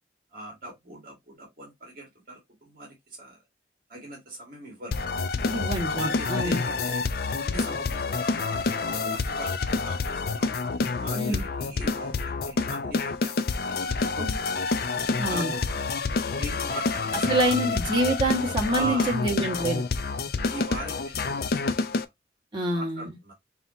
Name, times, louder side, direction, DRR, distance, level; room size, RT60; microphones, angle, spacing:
voice 1, 0.3-3.4 3.9-4.9 5.7-7.1 7.4-8.6 8.9-10.5 11.0-14.3 15.0-15.8 16.3-17.6 18.7-19.2 20.5-22.1 22.7-23.3, right 1 dB, 50° right, 1.7 m, -40 dB
sound 1, 4.9-22.0, left 4 dB, 55° left, 0.5 m, -28 dB
voice 2, 5.5-6.6 11.1-11.4 14.2-14.3 15.2-15.5 17.3-19.8 22.5-23.1, right 1 dB, 25° right, 1.7 m, -26 dB
5.7 x 2.8 x 2.7 m
head